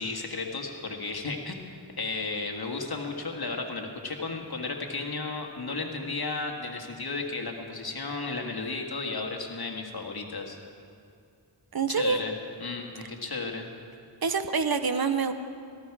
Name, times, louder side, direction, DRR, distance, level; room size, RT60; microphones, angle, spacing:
voice 1, 0.0-1.6 2.0-10.6 11.9-12.3 12.6-13.7, left 3 dB, 55° left, 2 dB, 1.8 m, -34 dB
voice 2, 11.7-12.2 14.2-15.3, right 5 dB, 55° right, 10 dB, 0.8 m, -26 dB
18.0 x 14.5 x 4.8 m, 2.3 s
wide cardioid pair, 60°, 45 cm